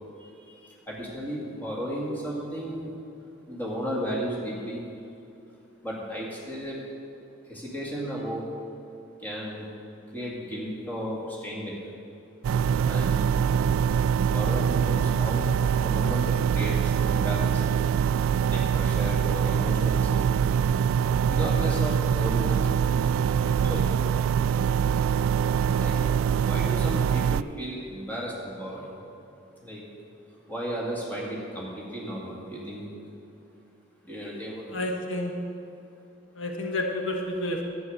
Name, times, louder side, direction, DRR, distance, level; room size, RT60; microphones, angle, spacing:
voice 1, 0.2-0.5 0.9-2.9 3.5-4.8 5.8-6.8 7.5-8.5 9.2-9.7 10.1-11.8 12.8-13.4 14.3-15.5 15.8-17.6 18.5-20.3 21.3-22.7 23.6-23.9 25.7-26.0 26.4-28.9 29.6-29.8 30.5-32.9 34.0-34.7, equal, 10° left, -4 dB, 2.1 m, -34 dB
sound 1, 12.4-27.4, right 7 dB, 85° right, 0.3 m, -24 dB
voice 2, 34.7-35.3 36.3-37.6, left 1 dB, 70° left, 1 dB, 1.2 m, -30 dB
11.0 x 9.4 x 6.4 m, 2.7 s
head